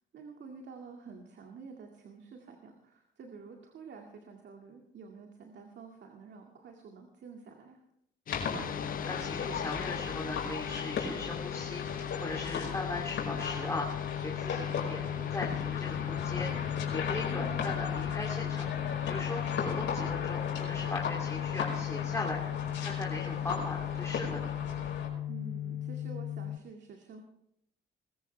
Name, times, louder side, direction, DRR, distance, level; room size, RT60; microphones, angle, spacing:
voice 1, 0.1-7.8 14.3-14.7 17.1-17.7 25.3-27.2, right 5 dB, 65° right, 2 dB, 2.2 m, -49 dB
sound 1, 8.3-25.1, left 5 dB, 70° left, 5.1 m, -37 dB
sound 2, 8.3-26.6, left 11 dB, 45° left, 0.5 m, -37 dB
voice 2, 8.5-13.9 14.2-18.6 19.1-22.4 22.8-24.5, left 2 dB, 15° left, -2 dB, 2.8 m, -39 dB
21.0 x 14.5 x 3.4 m, 0.77 s
cardioid pair, 90°, 20 cm